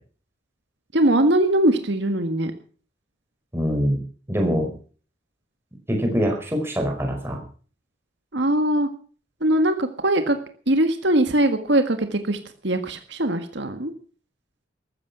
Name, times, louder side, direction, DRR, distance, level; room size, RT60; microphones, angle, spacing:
voice 1, 0.9-2.5 8.3-8.9 9.4-10.4 10.7-12.4 12.6-13.9, right 1 dB, 65° right, 7 dB, 1.7 m, -21 dB
voice 2, 3.5-4.0 4.3-4.7 5.9-7.4, equal, 10° right, 2 dB, 5.0 m, -23 dB
14.5 x 14.0 x 6.1 m, 0.42 s
head